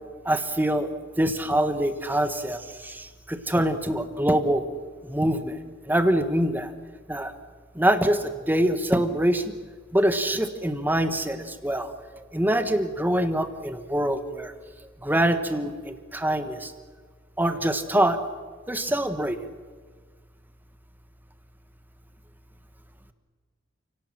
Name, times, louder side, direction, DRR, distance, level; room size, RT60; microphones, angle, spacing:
voice 1, 0.2-0.9 1.2-4.6 5.1-5.6 5.9-6.7 7.1-7.3 7.7-9.5 9.9-11.9 12.3-14.5 15.0-16.7 17.4-18.2 18.7-19.4, right 1 dB, 10° right, 8 dB, 1.5 m, -24 dB
29.0 x 18.0 x 7.6 m, 1.5 s
head